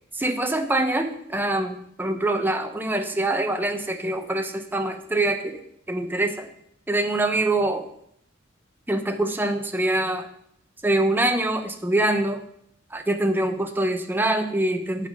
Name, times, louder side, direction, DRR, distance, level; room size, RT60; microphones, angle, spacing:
voice 1, 0.1-5.6 5.9-6.5 6.9-7.8 8.9-10.3 10.8-12.4 12.9-15.1, right 1 dB, 10° right, 5 dB, 0.8 m, -24 dB
8.5 x 5.7 x 6.1 m, 0.71 s
head